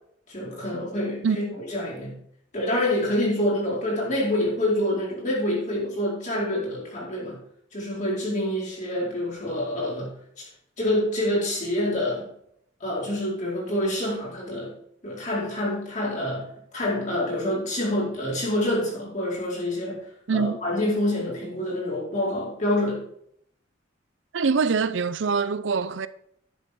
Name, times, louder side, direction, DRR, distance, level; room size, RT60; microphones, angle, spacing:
voice 1, 0.3-2.2 2.5-7.4 7.7-10.5 10.8-12.3 12.8-14.7 15.0-20.0 20.3-23.0, left 1 dB, 40° left, 4.4 m, -27 dB
voice 2, 20.3-20.6 24.3-26.1, right 5 dB, 70° right, 0.5 m, -24 dB
10.0 x 7.5 x 4.5 m
head